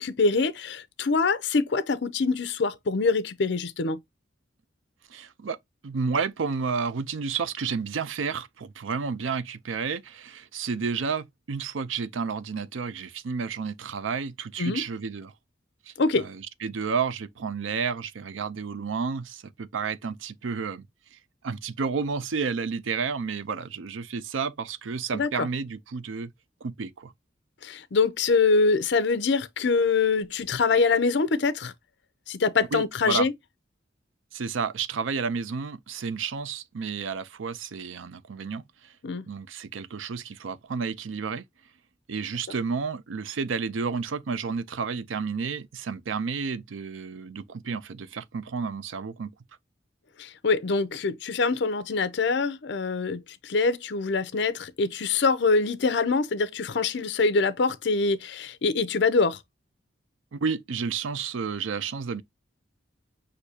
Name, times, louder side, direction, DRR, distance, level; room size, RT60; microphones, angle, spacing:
voice 1, 0.0-4.0 14.6-14.8 16.0-16.3 25.1-25.5 27.6-31.7 32.3-33.3 39.0-39.2 50.2-59.4, left 4 dB, 65° left, 0.6 m, -24 dB
voice 2, 5.1-5.6 5.8-15.3 15.9-20.8 21.1-21.2 21.4-26.3 26.6-27.1 32.7-33.3 34.3-38.6 39.3-41.4 42.1-49.3 60.3-62.2, right 5 dB, 90° right, 0.5 m, -31 dB
6.4 x 2.7 x 2.7 m
head